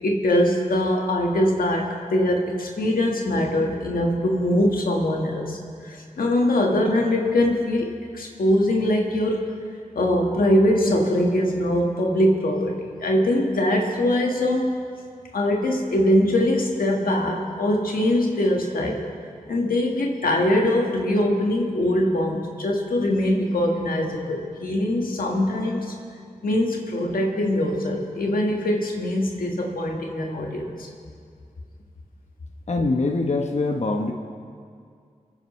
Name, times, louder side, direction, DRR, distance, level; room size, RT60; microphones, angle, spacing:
voice 1, 0.0-5.6 5.9-9.4 9.9-14.8 15.3-19.0 19.5-26.0 26.4-30.9, left 1 dB, 85° left, 0 dB, 1.6 m, -22 dB
voice 2, 32.7-34.1, left 3 dB, 50° left, 2 dB, 1.0 m, -23 dB
28.5 x 9.9 x 3.2 m, 2.2 s
cardioid pair, 45°, 14 cm